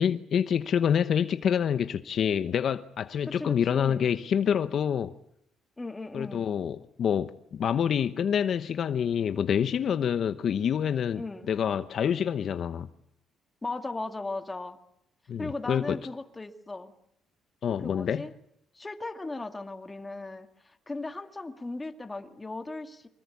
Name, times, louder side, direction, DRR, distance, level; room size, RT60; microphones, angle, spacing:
voice 1, 0.0-5.1 6.1-11.2 11.5-12.9 15.3-16.0 17.6-18.3, left 8 dB, 55° left, 0.9 m, -27 dB
voice 2, 3.3-4.1 5.8-6.5 11.1-11.5 13.6-14.8 15.4-16.9 17.8-18.3 18.7-23.1, left 2 dB, 15° left, 2.2 m, -37 dB
25.5 x 20.5 x 8.6 m
cardioid pair, 120°, 0 cm